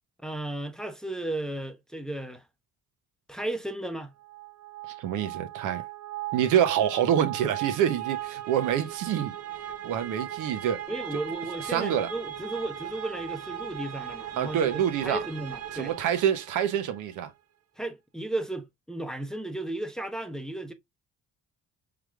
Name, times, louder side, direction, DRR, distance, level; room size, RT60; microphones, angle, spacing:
voice 1, 0.2-2.4 3.3-4.1 10.9-15.9 17.8-20.7, right 1 dB, ahead, 0.7 m, -34 dB
sound 1, 4.2-17.0, right 11 dB, 55° right, 0.7 m, -38 dB
voice 2, 5.0-5.8 6.3-9.3 9.8-10.8 11.6-12.1 14.4-15.2 15.7-17.3, right 9 dB, 90° right, 0.8 m, -26 dB
4.8 x 3.4 x 2.2 m
cardioid pair, 90°, 30 cm